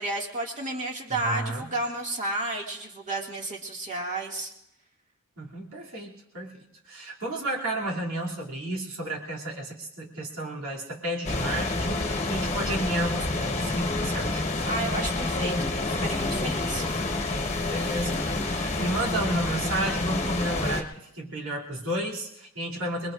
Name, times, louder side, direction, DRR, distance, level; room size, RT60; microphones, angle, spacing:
voice 1, 0.0-4.5 14.6-16.8, right 2 dB, 35° right, 0 dB, 2.1 m, -32 dB
voice 2, 1.1-1.7 5.4-6.6 6.8-14.4 17.7-23.1, right 1 dB, 75° right, -2 dB, 2.8 m, -32 dB
sound 1, 11.2-20.8, left 2 dB, 35° left, 1.2 m, -28 dB
28.0 x 21.0 x 2.5 m, 0.85 s
head